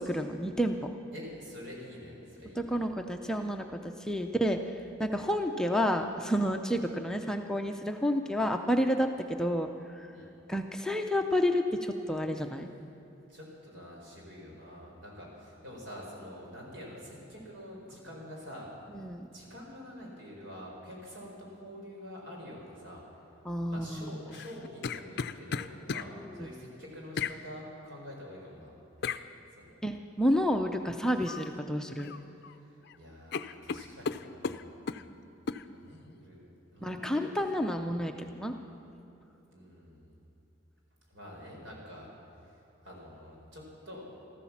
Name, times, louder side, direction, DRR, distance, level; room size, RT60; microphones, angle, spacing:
voice 1, 0.0-0.9 2.6-4.7 5.0-9.7 9.9-10.1 10.5-12.7 18.9-19.3 23.4-24.3 26.4-26.5 29.8-32.1 36.8-38.5, equal, 5° left, 4 dB, 0.5 m, -30 dB
voice 2, 1.1-2.8 10.1-10.3 13.3-18.7 19.3-23.0 23.7-26.1 26.3-28.8 29.6-29.7 32.4-34.8 35.7-36.4 36.7-37.3 37.8-38.2 39.4-40.2 41.1-42.1 42.8-44.1, equal, 70° right, -2 dB, 4.6 m, -47 dB
sound 1, 24.3-26.1 27.2-27.4 29.0-29.2 31.2-31.5 31.9-32.5 32.8-33.0 33.3-35.0 35.5-35.6, left 5 dB, 55° left, 0.5 m, -35 dB
14.0 x 13.5 x 7.2 m, 2.9 s
head